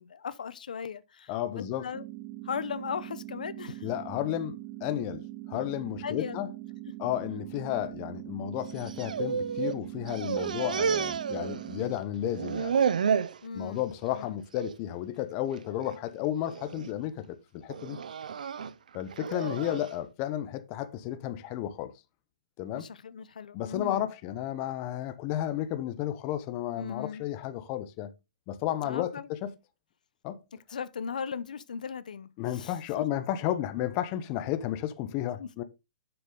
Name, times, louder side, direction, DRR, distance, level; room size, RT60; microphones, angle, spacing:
voice 1, 0.0-2.0 2.4-3.9 6.0-6.5 13.4-13.8 14.1-14.4 19.3-19.9 22.7-24.0 26.8-27.3 28.8-29.3 30.7-33.1 35.4-35.5, left 6 dB, 85° left, 0.7 m, -38 dB
voice 2, 1.3-1.9 3.8-6.5 7.0-12.7 13.5-18.0 18.9-21.9 22.6-22.9 23.5-28.1 28.5-29.5 30.2-30.4 32.4-35.6, left 12 dB, 30° left, 0.8 m, -33 dB
sound 1, 1.9-11.9, right 18 dB, 25° right, 0.3 m, -42 dB
sound 2, 8.7-9.8 10.1-11.9 12.2-13.4 13.9-14.2 14.6-14.7 15.6-16.0 16.5-16.9 17.7-19.9, right 7 dB, 80° right, 0.6 m, -31 dB
7.0 x 6.9 x 3.8 m
hypercardioid pair, 155°, 4 cm